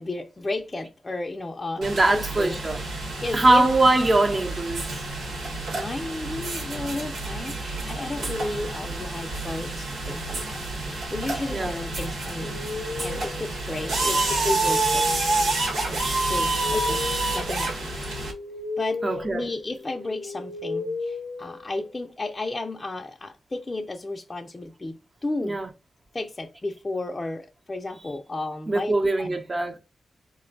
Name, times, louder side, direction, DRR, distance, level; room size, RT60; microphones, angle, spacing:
voice 1, 0.0-2.6 3.2-3.7 5.7-15.1 15.9-17.1 17.3-18.0 18.8-19.0 19.3-25.6 26.1-29.4, left 2 dB, 30° left, 0.5 m, -33 dB
voice 2, 1.8-2.8 3.3-5.0 11.5-11.7 19.0-19.5 25.4-25.7 28.7-29.8, right 2 dB, 35° right, 1.0 m, -22 dB
sound 1, 1.8-18.3, right 2 dB, 85° right, 1.4 m, -28 dB
sound 2, 12.4-22.1, left 3 dB, 90° left, 0.6 m, -36 dB
4.3 x 2.2 x 3.7 m
cardioid pair, 65°, 0 cm